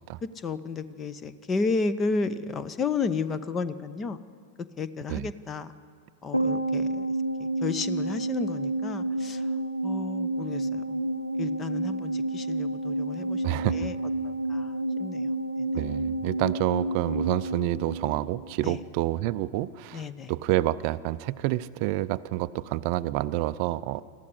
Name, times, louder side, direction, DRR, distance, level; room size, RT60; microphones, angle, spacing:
voice 1, 0.2-4.2 4.6-5.7 6.2-7.1 7.4-9.4 9.8-11.0 11.4-14.0 14.2-14.7 15.0-15.3 15.6-15.7 18.6-18.8 19.9-20.3, left 4 dB, 25° left, 15 dB, 0.9 m, -32 dB
sound 1, 6.3-18.9 19.1-19.2, right 2 dB, 90° right, 0.7 m, -30 dB
voice 2, 13.4-13.9 15.7-24.0, right 16 dB, 45° right, 16 dB, 0.4 m, -28 dB
20.5 x 14.5 x 9.7 m, 2.1 s
figure-of-eight pair, 90°, 0 cm